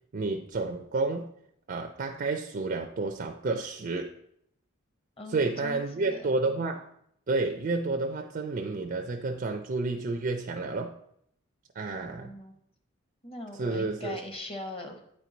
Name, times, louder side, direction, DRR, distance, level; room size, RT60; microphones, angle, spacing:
voice 1, 0.1-1.3 1.7-4.1 5.3-6.9 7.3-11.0 11.7-12.3 13.6-14.2, right 3 dB, 45° right, 4 dB, 0.4 m, -30 dB
voice 2, 5.2-6.3 11.9-12.6 13.2-15.0, left 1 dB, 25° left, 5 dB, 0.9 m, -41 dB
8.8 x 4.5 x 3.9 m, 0.71 s
head